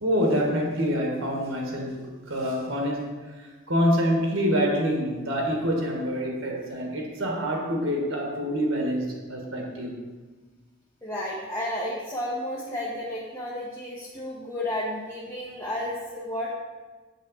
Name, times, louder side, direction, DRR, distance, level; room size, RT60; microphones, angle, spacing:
voice 1, 0.0-9.9, equal, 65° right, 0 dB, 1.7 m, -26 dB
voice 2, 11.0-16.5, left 1 dB, 15° left, -6 dB, 0.9 m, -32 dB
7.5 x 6.8 x 4.1 m, 1.3 s
head